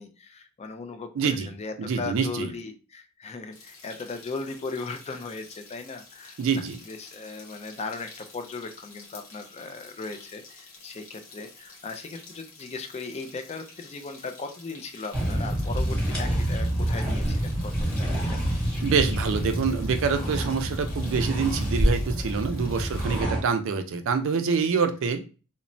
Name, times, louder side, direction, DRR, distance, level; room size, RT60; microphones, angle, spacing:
voice 1, 0.0-18.4, left 4 dB, 30° left, 7 dB, 0.3 m, -38 dB
voice 2, 1.1-1.5 1.8-2.5 6.4-6.8 18.8-25.2, right 5 dB, 65° right, 8 dB, 0.4 m, -26 dB
sound 1, 3.5-23.2, left 3 dB, 75° left, 1.0 m, -49 dB
sound 2, 15.1-23.4, equal, 5° left, 1.1 m, -27 dB
3.0 x 2.0 x 2.6 m, 0.34 s
head